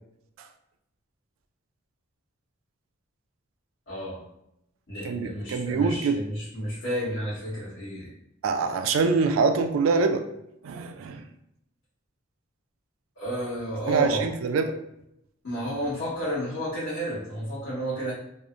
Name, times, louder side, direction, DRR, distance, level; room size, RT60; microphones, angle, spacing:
voice 1, 3.9-4.2 4.9-8.1 13.2-14.3 15.4-18.1, right 1 dB, 80° left, -8 dB, 1.3 m, -31 dB
voice 2, 5.0-6.2 8.4-10.2 10.6-11.2 13.9-14.8, right 4 dB, 85° right, 7 dB, 0.3 m, -24 dB
2.7 x 2.0 x 2.4 m, 0.79 s
head